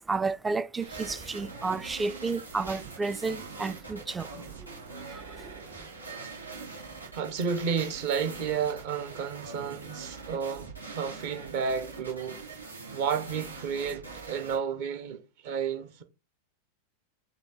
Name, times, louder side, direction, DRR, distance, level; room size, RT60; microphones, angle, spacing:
voice 1, 0.0-4.3 4.6-4.8 5.1-5.5, right 4 dB, 10° right, 0.4 m, -32 dB
sound 1, 0.8-14.6, right 4 dB, 85° right, 2.5 m, -43 dB
voice 2, 7.1-12.4 12.9-16.0, right 6 dB, 50° right, 1.1 m, -32 dB
8.0 x 3.0 x 3.8 m
figure-of-eight pair, 90°, 0 cm